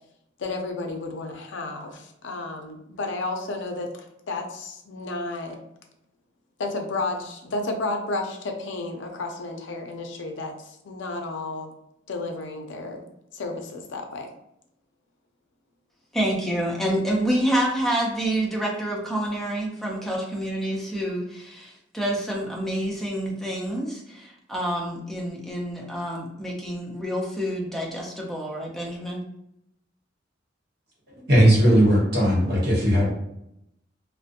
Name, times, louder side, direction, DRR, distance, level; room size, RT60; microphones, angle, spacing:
voice 1, 0.4-5.6 6.6-11.7 12.1-13.0 13.3-14.3, left 2 dB, 75° left, 3 dB, 0.5 m, -32 dB
voice 2, 16.1-29.2, right 1 dB, ahead, -2 dB, 0.5 m, -28 dB
voice 3, 31.3-33.1, equal, 60° right, -5 dB, 1.0 m, -18 dB
2.5 x 2.1 x 2.6 m, 0.79 s
head